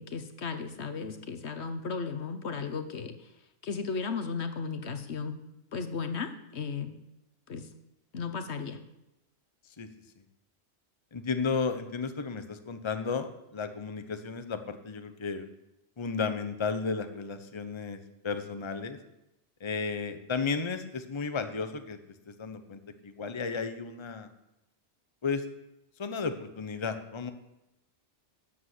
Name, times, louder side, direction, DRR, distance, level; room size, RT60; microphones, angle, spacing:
voice 1, 0.0-3.3 3.6-5.4 5.7-6.9 7.5-7.7 8.1-8.8, left 5 dB, 70° left, 8 dB, 1.3 m, -35 dB
voice 2, 11.1-15.4 16.0-18.0 18.2-19.0 19.6-22.0 22.3-24.3 25.2-25.5 26.0-27.3, left 5 dB, 25° left, 9 dB, 0.9 m, -33 dB
12.5 x 7.9 x 8.0 m, 0.90 s
omnidirectional pair, 1.2 m